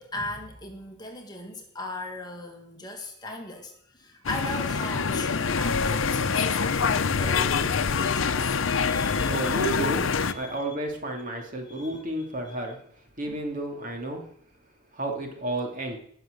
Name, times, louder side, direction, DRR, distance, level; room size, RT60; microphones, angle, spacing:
voice 1, 0.0-9.7 10.2-10.7 11.5-12.6 13.2-13.4, left 2 dB, 20° left, 3 dB, 1.7 m, -39 dB
sound 1, 4.2-10.3, left 5 dB, 80° left, 0.7 m, -25 dB
voice 2, 9.3-10.0 10.3-12.8 13.2-14.2 14.9-16.0, right 1 dB, 40° right, 2 dB, 2.7 m, -31 dB
18.5 x 6.5 x 6.8 m, 0.66 s
head